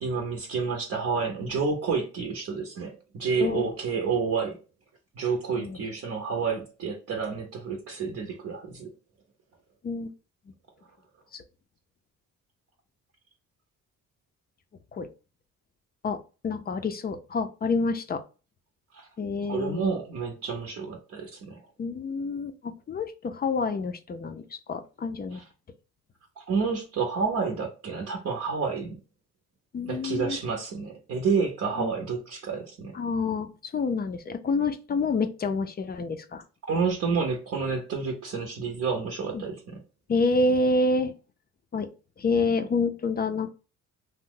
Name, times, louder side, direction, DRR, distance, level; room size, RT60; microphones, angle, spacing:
voice 1, 0.0-4.6 5.1-8.9 18.9-19.1 19.5-21.6 25.3-25.4 26.4-29.0 29.8-32.9 36.7-39.8, right 5 dB, 55° right, 0.7 m, -29 dB
voice 2, 16.0-18.2 19.2-20.0 21.8-25.4 29.7-30.4 31.8-31.9 32.9-36.4 39.3-39.4 40.1-41.1 41.7-41.9 42.2-43.5, left 3 dB, 30° left, 0.4 m, -28 dB
2.7 x 2.0 x 3.7 m
cardioid pair, 90°, 30 cm